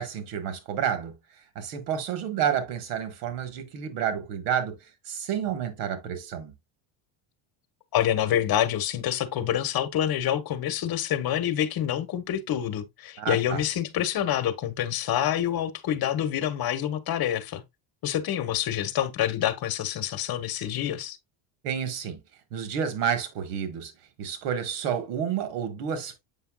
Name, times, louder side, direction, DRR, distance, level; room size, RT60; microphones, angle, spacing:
voice 1, 0.0-6.5 13.2-13.6 21.6-22.2 22.5-23.9 24.2-26.2, right 8 dB, 90° right, 1.7 m, -30 dB
voice 2, 7.9-17.6 18.0-21.2, left 11 dB, 45° left, 1.3 m, -27 dB
8.3 x 5.6 x 2.4 m
cardioid pair, 135°, 49 cm